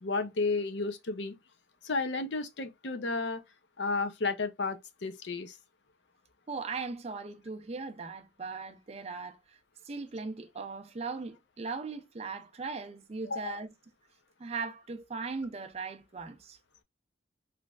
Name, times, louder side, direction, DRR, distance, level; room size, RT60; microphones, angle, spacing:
voice 1, 0.0-1.3 1.8-3.4 3.8-5.6 13.2-13.5, left 3 dB, 65° left, 0.6 m, -32 dB
voice 2, 6.5-9.6 9.8-13.7 14.4-16.6, right 4 dB, 35° right, 0.4 m, -39 dB
3.2 x 3.0 x 2.3 m
head